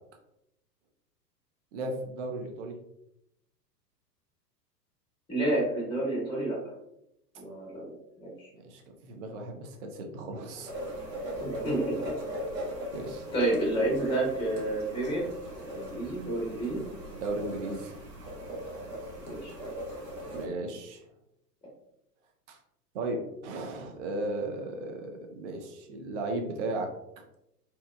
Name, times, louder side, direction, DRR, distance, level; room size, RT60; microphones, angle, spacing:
voice 1, 1.7-2.8 8.6-10.7 12.9-13.3 17.2-18.0 20.3-21.0 22.5-22.6 22.9-26.9, right 2 dB, 50° right, 3 dB, 0.5 m, -35 dB
voice 2, 5.3-6.6 7.3-7.9 8.2-8.5 11.4-11.8 13.3-15.3 15.6-16.8 19.3-19.5, right 1 dB, 10° left, -3 dB, 0.8 m, -29 dB
sound 1, 10.7-20.5, equal, 75° right, 1.0 m, -39 dB
2.9 x 2.1 x 2.2 m, 0.81 s
figure-of-eight pair, 100°, 49 cm